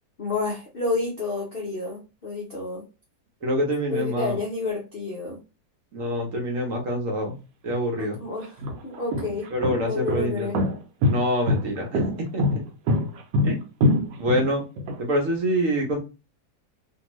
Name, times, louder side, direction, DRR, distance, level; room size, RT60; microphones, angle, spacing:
voice 1, 0.2-2.8 3.9-5.4 8.0-9.5 9.8-10.6, left 3 dB, 75° left, -1 dB, 0.5 m, -30 dB
voice 2, 3.4-4.4 5.9-7.3 7.6-8.2 9.5-10.5 11.1-12.6 13.4-13.6 14.2-14.6 15.0-16.0, equal, 60° right, 1 dB, 0.9 m, -26 dB
sound 1, 7.7-7.8 8.4-15.0, left 1 dB, 90° right, 1.3 m, -24 dB
2.7 x 2.6 x 2.9 m, 0.31 s
omnidirectional pair, 1.9 m